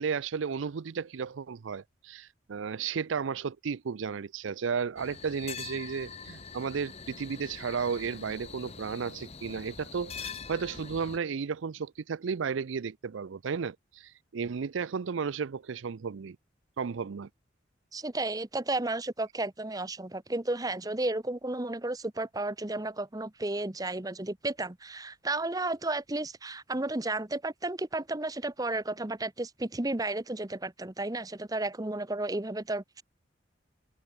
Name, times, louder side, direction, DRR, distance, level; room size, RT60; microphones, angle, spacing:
voice 1, 0.0-16.4 16.8-17.3, right 6 dB, 85° right, 0.5 m, -33 dB
sound 1, 5.0-11.2, left 5 dB, 35° left, 2.3 m, -44 dB
voice 2, 17.9-33.0, right 2 dB, 20° right, 0.9 m, -33 dB
head